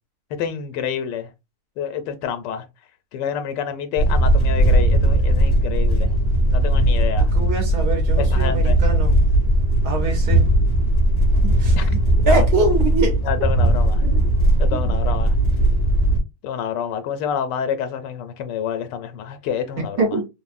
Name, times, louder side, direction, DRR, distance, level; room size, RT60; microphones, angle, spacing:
voice 1, 0.4-1.3 1.8-2.7 3.1-6.2 6.5-7.3 8.2-8.8 11.7-11.9 12.2-12.4 13.2-14.1 14.6-15.3 16.4-20.1, left 8 dB, 90° left, 1.2 m, -28 dB
sound 1, 4.0-16.2, right 1 dB, 45° left, 1.1 m, -18 dB
voice 2, 7.3-9.1 9.8-10.5 11.6-11.8 12.3-13.2 14.0-14.2 14.7-14.9 20.0-20.3, right 2 dB, 70° right, 1.3 m, -23 dB
3.4 x 2.0 x 2.4 m
omnidirectional pair, 1.8 m